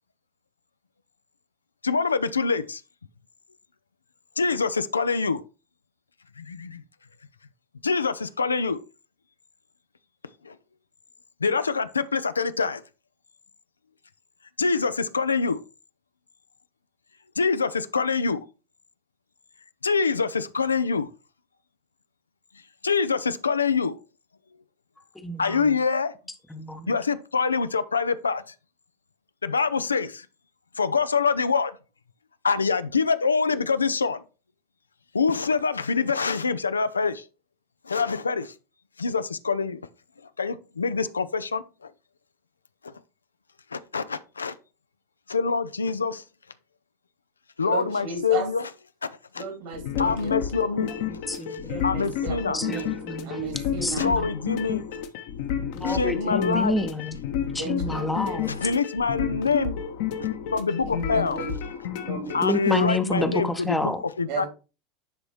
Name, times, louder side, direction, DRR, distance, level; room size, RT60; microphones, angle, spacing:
voice 1, 1.8-2.8 4.4-5.4 6.4-6.8 7.8-8.8 10.4-10.6 11.4-12.8 14.6-15.6 17.4-18.4 19.8-21.1 22.8-24.0 25.4-26.1 26.9-28.4 29.4-30.3 30.8-31.8 32.4-34.2 35.1-37.2 37.9-38.5 39.0-39.8 40.4-41.9 43.7-44.5 45.3-46.2 47.6-48.6 49.3-49.4 50.0-50.9 51.8-52.6 54.0-54.8 55.9-56.8 58.5-59.8 60.5-61.4 62.3-63.9 64.2-64.5, left 5 dB, 80° left, 0.4 m, -25 dB
voice 2, 25.1-25.8 26.5-27.0 50.8-51.7 52.5-53.4 53.8-54.3 55.7-57.2 57.5-58.5 62.4-64.0, left 1 dB, 10° left, 0.8 m, -29 dB
voice 3, 47.6-48.5 49.3-50.4 51.7-53.0 53.2-54.1 55.8-56.7 57.5-58.5 60.7-61.6 62.1-62.5 62.9-63.1 64.3-64.5, right 5 dB, 60° right, 2.8 m, -35 dB
sound 1, 49.7-62.6, left 9 dB, 55° left, 1.0 m, -31 dB
10.0 x 4.0 x 3.1 m
figure-of-eight pair, 80°, 0 cm